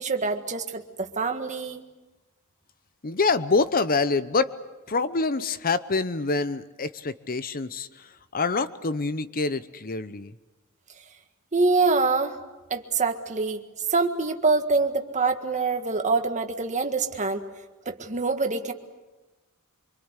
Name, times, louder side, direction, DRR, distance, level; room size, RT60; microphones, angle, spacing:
voice 1, 0.0-1.8 11.5-12.4 12.7-13.6 13.9-17.5 17.8-18.7, right 3 dB, 35° right, 6 dB, 1.7 m, -25 dB
voice 2, 3.0-4.5 4.9-10.4, left 4 dB, 40° left, 13 dB, 0.8 m, -26 dB
25.5 x 24.5 x 8.3 m, 1.1 s
head